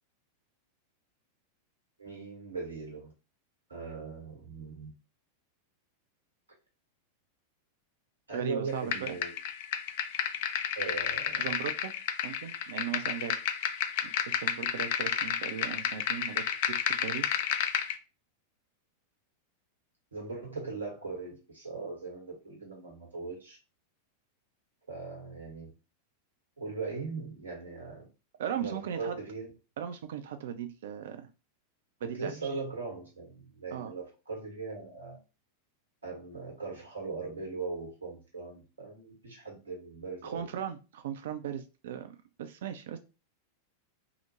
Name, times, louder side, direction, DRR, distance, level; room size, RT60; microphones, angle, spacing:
voice 1, 2.0-3.1 3.7-4.9 8.3-9.3 10.7-11.5 20.1-23.6 24.9-25.7 26.6-28.0 28.6-29.5 32.0-35.2 36.0-40.5, right 4 dB, 75° right, -1 dB, 1.0 m, -39 dB
voice 2, 8.3-9.2 11.4-11.9 12.2-13.7 14.0-17.3 28.4-29.2 29.8-31.3 32.0-32.3 33.7-33.9 40.2-43.0, right 9 dB, 60° right, 8 dB, 0.4 m, -38 dB
sound 1, 8.9-18.0, left 9 dB, 50° left, 0.3 m, -31 dB
2.4 x 2.0 x 3.0 m, 0.30 s
figure-of-eight pair, 90°, 0 cm